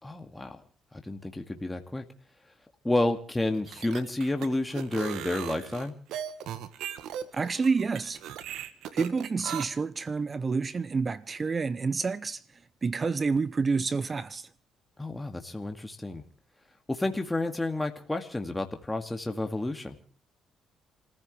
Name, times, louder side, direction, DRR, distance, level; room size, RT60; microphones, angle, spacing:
voice 1, 0.0-0.6 1.0-2.0 2.8-6.0 15.0-16.2 16.9-20.0, left 2 dB, 10° left, 2.2 m, -30 dB
sound 1, 3.5-9.6, right 10 dB, 80° right, 1.6 m, -38 dB
voice 2, 7.3-8.2 8.9-12.4 12.8-14.5, right 4 dB, 35° right, 0.7 m, -28 dB
28.5 x 15.0 x 3.3 m
cardioid pair, 85°, 0 cm